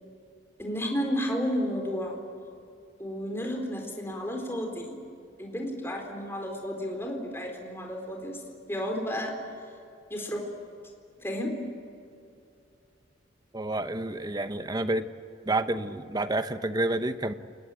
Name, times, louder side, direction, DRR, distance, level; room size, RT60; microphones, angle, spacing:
voice 1, 0.6-2.2 3.0-5.0 5.4-8.4 8.7-9.4 10.1-10.4 11.2-11.5, equal, 15° left, 1 dB, 4.2 m, -32 dB
voice 2, 13.5-15.1 15.4-17.3, right 2 dB, 20° right, 10 dB, 0.9 m, -29 dB
29.0 x 20.5 x 9.0 m, 2.5 s
head